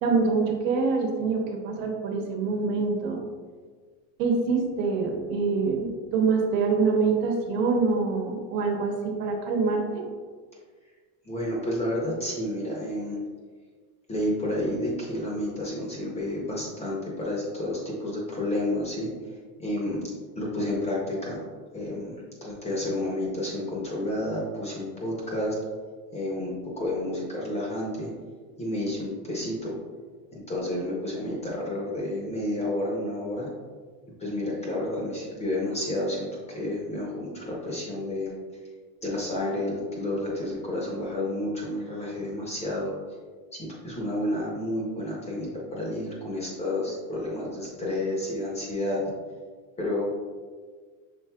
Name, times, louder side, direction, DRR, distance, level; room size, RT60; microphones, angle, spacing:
voice 1, 0.0-3.2 4.2-10.0, right 4 dB, 85° right, 1 dB, 1.1 m, -25 dB
voice 2, 11.2-13.2 14.1-19.1 19.6-20.0 20.4-21.4 21.7-22.1 22.4-25.6 26.1-28.1 28.6-29.7 30.3-33.5 34.2-38.3 39.0-42.9 43.5-49.0 49.8-50.0, left 1 dB, 15° left, -3 dB, 0.6 m, -30 dB
5.9 x 3.7 x 2.2 m, 1.5 s
cardioid pair, 160°, 47 cm